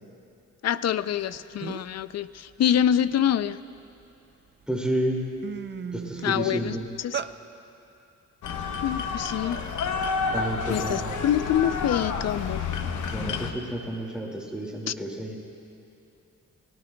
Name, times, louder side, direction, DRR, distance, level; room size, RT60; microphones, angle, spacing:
voice 1, 0.6-3.6 6.2-6.7 7.0-7.2 8.8-9.6 10.7-12.6 14.9-15.0, left 10 dB, 60° left, 15 dB, 0.5 m, -25 dB
sound 1, 1.2-1.3 1.6-2.0 2.5-4.0 4.6-4.8 5.1-7.3, right 8 dB, 40° right, 0.4 m, -36 dB
voice 2, 4.7-5.2 5.9-6.9 10.3-11.2 13.1-15.4, right 1 dB, 5° right, -1 dB, 2.2 m, -30 dB
sound 2, 8.4-13.5, left 5 dB, 90° left, 0.9 m, -30 dB
30.0 x 17.0 x 2.3 m, 2.8 s
cardioid pair, 95°, 30 cm